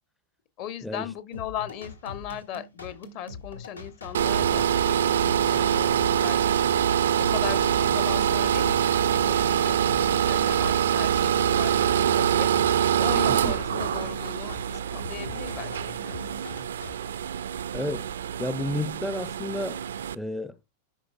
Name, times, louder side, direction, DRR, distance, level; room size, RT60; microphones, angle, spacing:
voice 1, 0.6-6.7 7.3-15.7 16.0-16.5, left 10 dB, 45° left, 0.8 m, -38 dB
sound 1, 1.3-16.9, left 3 dB, 80° left, 1.1 m, -42 dB
sound 2, 4.1-20.1, right 9 dB, 65° right, 0.3 m, -24 dB
voice 2, 17.7-18.1 18.4-19.8 20.1-20.6, left 1 dB, 5° left, 0.4 m, -31 dB
10.0 x 4.9 x 2.5 m
figure-of-eight pair, 90°, 0 cm